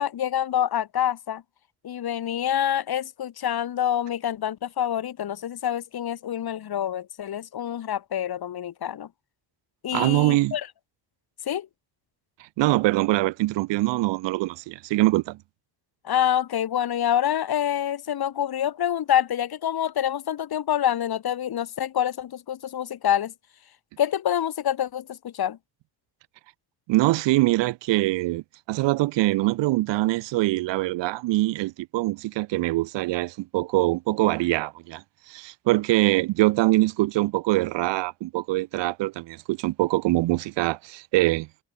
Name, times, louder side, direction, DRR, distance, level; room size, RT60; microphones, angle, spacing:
voice 1, 0.0-1.4 1.8-9.1 9.8-10.7 11.5-11.7 16.0-23.3 24.0-25.6, left 10 dB, 60° left, 1.3 m, -26 dB
voice 2, 9.9-10.6 12.6-15.4 26.9-28.4 28.7-35.0 35.3-41.5, right 18 dB, 85° right, 0.8 m, -23 dB
supercardioid pair, 50°, 42 cm